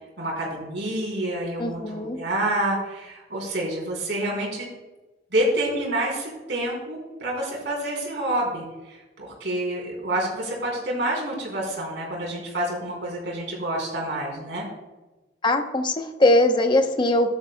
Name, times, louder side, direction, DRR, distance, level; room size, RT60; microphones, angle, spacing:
voice 1, 0.2-4.7 5.3-14.7, right 1 dB, 75° right, -4 dB, 3.6 m, -28 dB
voice 2, 1.6-2.2 15.4-17.4, left 1 dB, 25° left, 5 dB, 0.9 m, -21 dB
14.0 x 10.5 x 2.3 m, 1.1 s
head